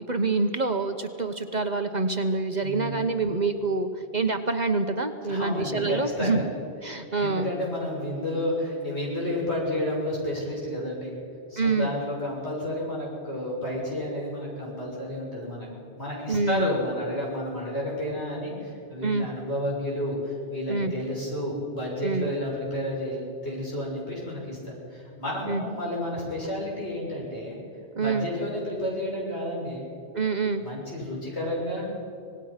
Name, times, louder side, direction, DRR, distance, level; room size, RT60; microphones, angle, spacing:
voice 1, 0.1-6.4 6.8-7.5 11.6-11.9 16.3-16.7 19.0-19.3 20.7-20.9 22.0-22.3 25.5-25.6 28.0-28.3 30.1-30.6, right 3 dB, 40° right, 6 dB, 1.1 m, -26 dB
voice 2, 2.6-3.0 5.3-6.4 6.9-11.1 11.5-15.7 16.0-27.6 28.0-29.9 30.6-31.9, left 1 dB, 70° left, -4 dB, 7.0 m, -31 dB
26.0 x 19.0 x 5.8 m, 2.6 s
omnidirectional pair, 1.2 m